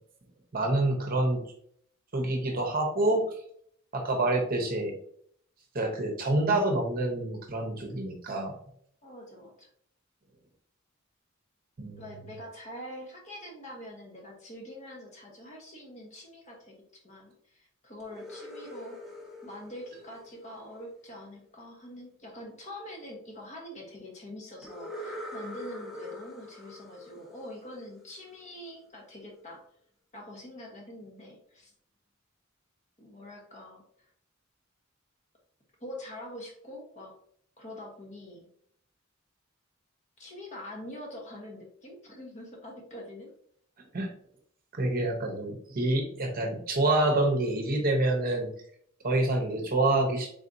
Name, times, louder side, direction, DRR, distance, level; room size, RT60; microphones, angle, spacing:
voice 1, 0.5-1.4 2.1-3.3 3.9-4.9 5.7-8.6 11.8-12.1 43.9-44.1 44.8-48.5 49.0-50.3, right 2 dB, 45° right, 2 dB, 0.8 m, -27 dB
voice 2, 9.0-9.7 11.9-29.6 30.1-31.7 33.0-33.8 35.8-37.1 37.6-38.5 40.2-43.3, left 1 dB, 35° left, -1 dB, 1.1 m, -44 dB
sound 1, 18.0-21.0 24.6-28.3, left 1 dB, 5° right, 0.8 m, -44 dB
4.1 x 3.6 x 2.6 m, 0.65 s
head